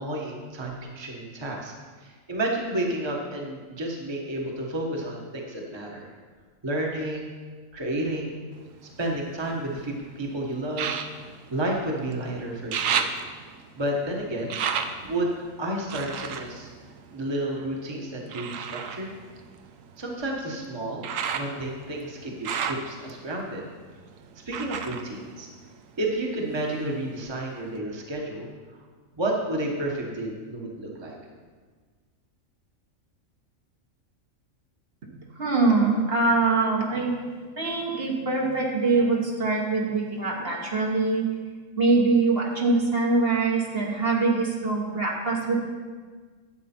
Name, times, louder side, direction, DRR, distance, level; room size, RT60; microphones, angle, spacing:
voice 1, 0.0-1.7 2.0-6.1 6.6-7.3 7.7-8.4 9.0-10.9 11.5-13.1 13.8-14.6 15.0-16.7 17.1-19.1 20.0-23.7 24.5-25.5 26.0-28.5 29.2-31.1, right 1 dB, 20° right, -1 dB, 1.2 m, -31 dB
sound 1, 8.5-9.9 10.7-12.2 12.5-17.7 18.3-26.1 26.5-27.3 27.8-27.9, right 7 dB, 80° right, 1.1 m, -34 dB
voice 2, 35.4-37.1 37.6-41.3 41.8-45.6, right 3 dB, 50° right, -2 dB, 1.5 m, -23 dB
11.5 x 8.1 x 4.4 m, 1.5 s
omnidirectional pair, 1.4 m